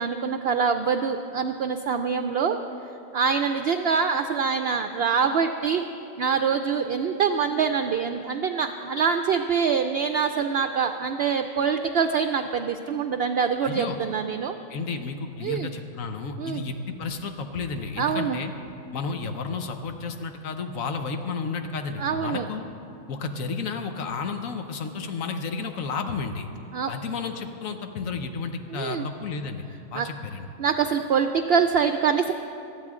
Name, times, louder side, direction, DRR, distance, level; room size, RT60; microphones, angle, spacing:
voice 1, 0.0-2.6 3.1-5.8 6.2-14.5 15.4-15.7 16.4-16.7 18.0-18.4 22.0-22.5 26.7-26.9 28.7-29.1 29.9-30.1 30.6-32.3, right 6 dB, 65° right, 7 dB, 0.6 m, -25 dB
voice 2, 13.6-14.0 14.7-18.5 18.9-22.7 23.1-26.5 26.9-29.6 29.9-30.5, left 4 dB, 90° left, 6 dB, 1.3 m, -32 dB
18.5 x 13.5 x 3.7 m, 2.7 s
omnidirectional pair, 1.4 m